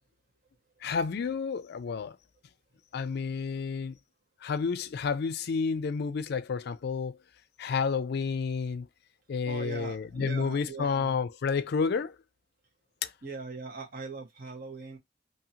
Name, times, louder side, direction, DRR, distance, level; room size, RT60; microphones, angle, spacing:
voice 1, 0.8-2.2 2.9-4.0 4.4-7.2 7.6-8.9 9.3-12.2 13.0-13.1, left 5 dB, 60° left, 0.4 m, -30 dB
voice 2, 9.4-11.2 13.2-15.0, right 3 dB, 50° right, 1.1 m, -41 dB
2.7 x 2.7 x 2.7 m
head